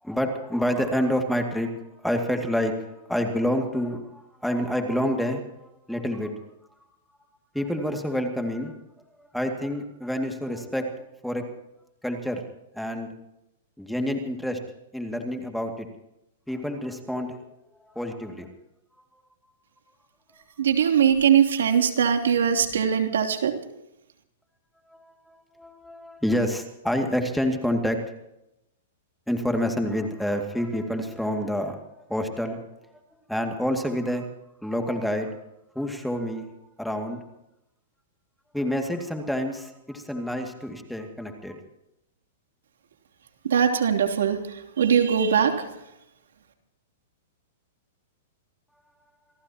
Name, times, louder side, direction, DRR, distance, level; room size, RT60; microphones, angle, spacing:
voice 1, 0.0-6.3 7.5-8.8 9.2-11.5 12.0-12.4 12.7-13.1 13.8-14.6 14.9-15.9 16.5-17.4 17.8-18.5 24.9-28.0 29.3-31.8 32.1-32.7 33.3-34.3 34.6-35.4 35.7-36.5 36.8-37.2 38.5-41.6, equal, ahead, 4 dB, 2.3 m, -28 dB
voice 2, 20.6-23.5 43.4-44.4 44.8-45.7, right 8 dB, 85° right, 4 dB, 3.1 m, -21 dB
27.5 x 17.5 x 2.9 m, 0.85 s
hypercardioid pair, 140°, 0 cm